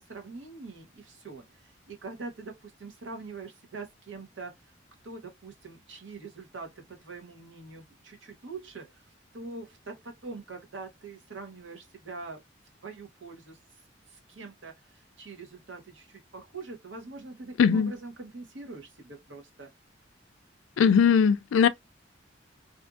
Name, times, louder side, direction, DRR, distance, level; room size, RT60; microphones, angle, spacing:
voice 1, 0.0-4.5 5.0-9.1 9.3-12.4 12.8-13.6 14.1-19.7, right 3 dB, 85° right, 0.9 m, -43 dB
voice 2, 17.6-17.9 20.8-21.7, left 7 dB, 85° left, 0.3 m, -20 dB
2.6 x 2.5 x 2.3 m
head